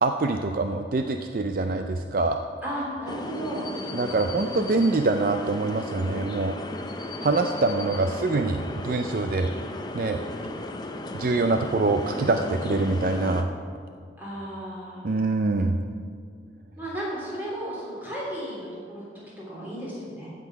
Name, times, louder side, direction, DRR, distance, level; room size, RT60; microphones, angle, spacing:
voice 1, 0.0-2.4 3.9-6.6 7.2-9.5 9.9-10.2 11.1-13.4 15.0-15.8, right 3 dB, 50° right, 6 dB, 0.4 m, -24 dB
voice 2, 2.6-3.7 14.2-15.1 16.8-20.3, equal, 10° right, -6 dB, 3.4 m, -34 dB
sound 1, 3.1-13.4, left 2 dB, 25° left, 0.6 m, -35 dB
15.0 x 6.0 x 5.9 m, 2.1 s
head